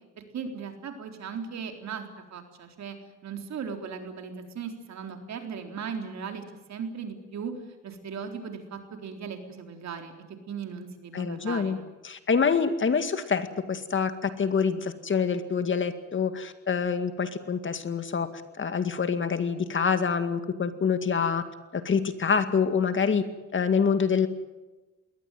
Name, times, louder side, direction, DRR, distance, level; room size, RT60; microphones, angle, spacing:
voice 1, 0.2-3.0 3.2-6.4 6.7-7.5 7.8-10.1 10.5-11.8, right 6 dB, 65° right, 5 dB, 4.0 m, -37 dB
voice 2, 11.1-11.8 12.0-18.3 18.6-21.4 21.7-23.2 23.5-24.3, left 6 dB, 40° left, 9 dB, 2.1 m, -26 dB
21.5 x 18.0 x 9.3 m, 1.1 s
cardioid pair, 90°, 30 cm